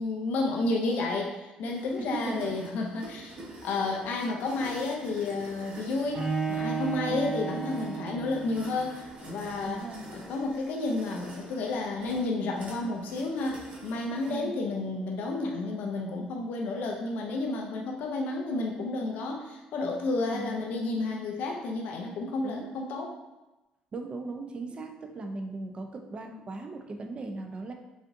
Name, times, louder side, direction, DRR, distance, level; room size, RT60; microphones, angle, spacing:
voice 1, 0.0-3.3 3.6-9.9 10.1-23.1, left 3 dB, 75° left, 1 dB, 0.5 m, -31 dB
sound 1, 1.7-14.3, right 1 dB, 55° right, 1.2 m, -48 dB
voice 2, 2.0-2.6 7.1-7.3 9.6-10.1 14.3-14.5 20.3-20.6 22.4-22.7 23.9-27.7, right 3 dB, 35° right, 4 dB, 0.5 m, -38 dB
Bowed string instrument, 6.1-9.1, right 5 dB, 85° right, 1.1 m, -33 dB
4.9 x 2.6 x 2.6 m, 1.0 s
cardioid pair, 100°, 3 cm